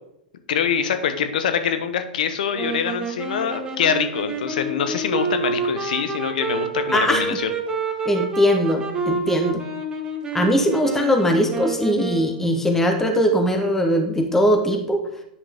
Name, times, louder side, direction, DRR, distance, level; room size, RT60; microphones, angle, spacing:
voice 1, 0.5-7.5, left 7 dB, 70° left, 10 dB, 0.9 m, -24 dB
sound 1, 2.5-12.5, right 4 dB, 20° right, 1.1 m, -28 dB
voice 2, 6.9-7.2 8.0-9.6 10.3-15.0, equal, 10° left, 4 dB, 1.0 m, -20 dB
9.6 x 5.2 x 3.5 m, 0.79 s
hypercardioid pair, 110°, 5 cm